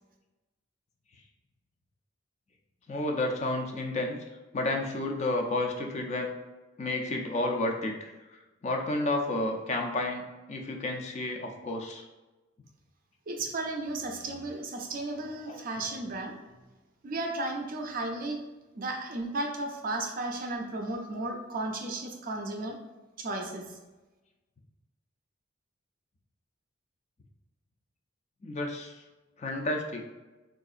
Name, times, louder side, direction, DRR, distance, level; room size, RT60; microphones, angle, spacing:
voice 1, 2.9-4.2 4.5-6.3 6.8-12.0 15.5-15.6 28.4-29.0 29.4-30.0, left 2 dB, 35° left, 2 dB, 0.3 m, -31 dB
voice 2, 13.3-16.4 17.0-18.4 18.7-22.8 23.2-23.7, right 2 dB, 40° right, 2 dB, 0.4 m, -34 dB
3.7 x 2.4 x 2.4 m, 1.1 s
head